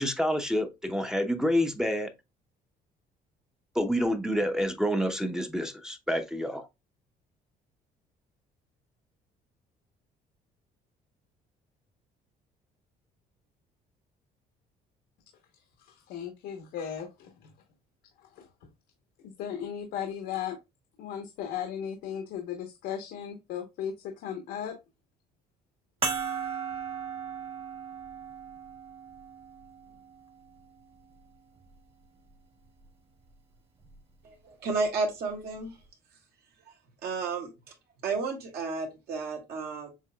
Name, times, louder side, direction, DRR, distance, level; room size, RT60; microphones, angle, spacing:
voice 1, 0.0-2.1 3.7-6.7, equal, 5° right, 0.6 m, -28 dB
voice 2, 15.8-17.5 18.2-18.5 19.2-20.6 21.0-24.8, left 9 dB, 90° left, 1.0 m, -36 dB
sound 1, 26.0-30.8 31.6-31.7 33.8-34.0, right 6 dB, 35° right, 1.5 m, -36 dB
voice 3, 34.2-35.7 37.0-37.5 38.0-39.9, right 4 dB, 70° right, 2.2 m, -32 dB
7.2 x 3.0 x 2.2 m
cardioid pair, 110°, 17 cm